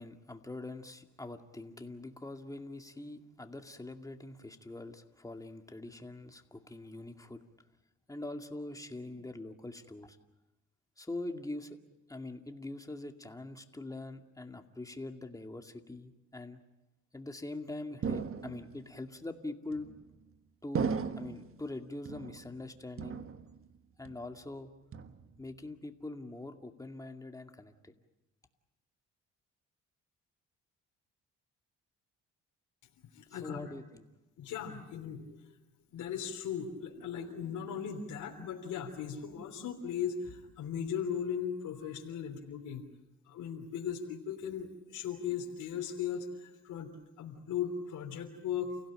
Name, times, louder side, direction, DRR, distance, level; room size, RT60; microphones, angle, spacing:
voice 1, 0.0-7.4 8.1-10.2 11.0-11.8 12.1-16.6 17.1-19.9 20.6-23.2 24.0-24.7 25.4-27.9 33.3-34.1, left 2 dB, 10° left, 5 dB, 2.2 m, -43 dB
sound 1, 18.0-18.9 19.7-20.2 20.7-21.5 22.1-22.7 23.0-23.8 24.0-24.5 24.9-25.5, right 6 dB, 45° right, 1.5 m, -37 dB
voice 2, 33.1-33.7 34.4-35.4 35.9-42.8 43.3-46.9 47.2-48.7, left 8 dB, 80° left, 3 dB, 3.5 m, -38 dB
30.0 x 16.5 x 8.9 m, 1.0 s
cardioid pair, 90°, 30 cm